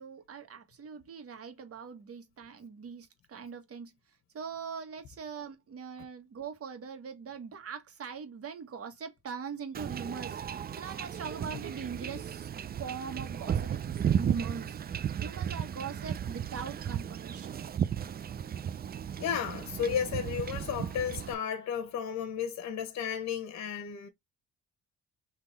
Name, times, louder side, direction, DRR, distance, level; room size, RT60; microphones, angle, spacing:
voice 1, 0.0-3.9 4.3-10.4 10.8-12.5 12.8-14.8 15.2-17.6, right 6 dB, 50° right, 1.4 m, -41 dB
Wind / Ocean / Boat Water vehicle, 9.7-21.3, right 9 dB, 30° right, 0.4 m, -34 dB
voice 2, 19.2-24.1, left 8 dB, 65° left, 1.1 m, -33 dB
3.8 x 2.9 x 4.1 m
cardioid pair, 90°, 30 cm